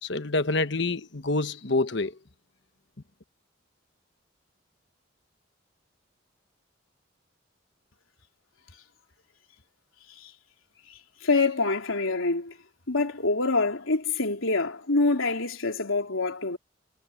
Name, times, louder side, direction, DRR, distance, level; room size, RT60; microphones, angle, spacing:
voice 1, 0.0-2.1, left 2 dB, 60° left, 1.2 m, -27 dB
voice 2, 11.2-12.5 12.9-16.6, left 3 dB, 90° left, 3.6 m, -25 dB
head